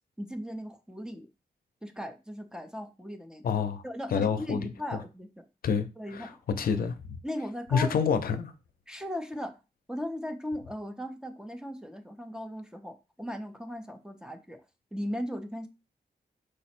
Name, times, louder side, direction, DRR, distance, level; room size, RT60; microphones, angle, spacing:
voice 1, 0.2-1.3 1.8-3.5 3.8-5.4 6.0-6.4 7.2-8.1 8.9-9.6 9.9-14.6 14.9-15.7, left 1 dB, 5° right, 0.5 m, -37 dB
voice 2, 3.4-3.8 4.1-4.7 5.6-7.2 7.7-8.5, left 6 dB, 70° left, 0.5 m, -28 dB
4.9 x 2.0 x 4.2 m
wide cardioid pair, 130°, 16 cm